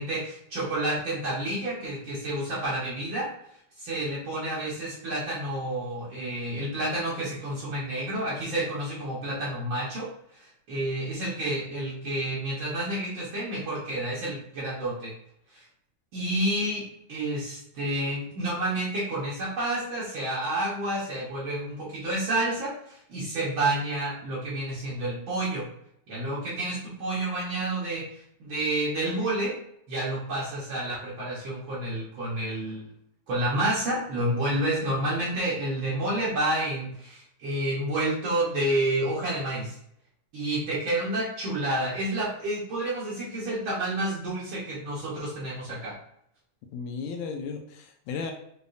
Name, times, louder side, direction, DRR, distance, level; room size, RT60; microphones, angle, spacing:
voice 1, 0.0-3.3 3.8-10.1 10.4-15.1 15.5-15.6 16.1-25.7 26.1-28.1 28.4-29.6 29.9-32.9 33.3-39.7 40.3-45.9, right 1 dB, 80° right, -7 dB, 1.1 m, -29 dB
voice 2, 46.7-48.3, left 5 dB, 80° left, 3 dB, 1.7 m, -34 dB
6.9 x 2.3 x 2.6 m, 0.70 s
omnidirectional pair, 3.8 m